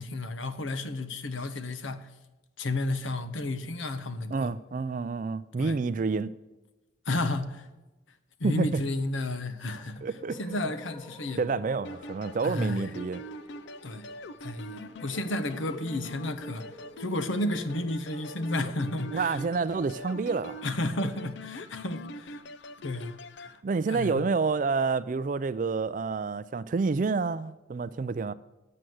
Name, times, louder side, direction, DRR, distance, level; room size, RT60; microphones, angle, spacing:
voice 1, 0.0-2.1 2.6-4.5 5.6-5.8 7.1-7.7 8.4-10.1 10.4-11.5 12.4-12.9 13.8-14.1 14.4-16.7 17.0-19.4 20.6-22.4 22.8-23.6 23.9-24.3, left 2 dB, 80° left, 0.9 m, -32 dB
voice 2, 4.3-6.3 8.4-8.8 10.0-10.4 11.4-13.2 19.1-20.6 23.6-28.3, right 4 dB, 40° right, 0.3 m, -28 dB
sound 1, 9.6-20.0, left 1 dB, 30° left, 1.2 m, -50 dB
sound 2, 11.8-23.6, left 1 dB, 65° left, 0.5 m, -43 dB
9.9 x 7.7 x 7.8 m
head